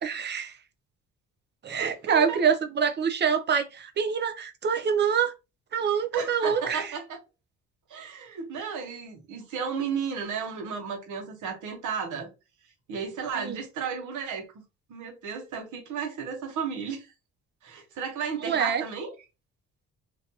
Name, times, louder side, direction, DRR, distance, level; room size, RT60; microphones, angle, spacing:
voice 1, 0.0-0.5 1.6-5.3 5.7-6.9 13.4-13.6 18.4-18.8, right 7 dB, 35° right, 0.5 m, -26 dB
voice 2, 1.7-2.4 6.1-7.2 7.9-12.3 12.9-14.5 14.9-17.1 17.6-19.1, right 6 dB, 70° right, 1.0 m, -33 dB
2.6 x 2.2 x 2.7 m
cardioid pair, 90°, 31 cm